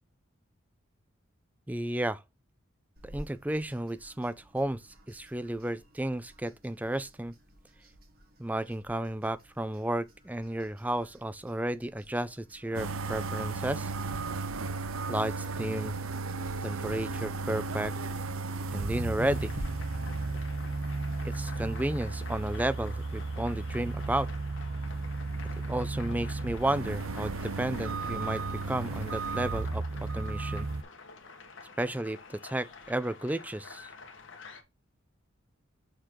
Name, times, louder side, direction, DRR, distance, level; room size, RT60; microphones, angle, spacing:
voice 1, 1.7-2.2 3.0-7.3 8.4-13.9 15.1-15.9 16.6-17.9 18.7-19.5 21.2-24.3 25.7-29.8 30.1-30.7 31.8-33.9, right 1 dB, 10° right, 0.4 m, -33 dB
sound 1, 3.0-19.6, right 1 dB, 45° right, 1.8 m, -54 dB
sound 2, 12.7-30.8, right 3 dB, 85° right, 0.8 m, -34 dB
sound 3, 19.2-34.6, left 4 dB, 65° left, 1.4 m, -48 dB
6.5 x 3.8 x 4.5 m
head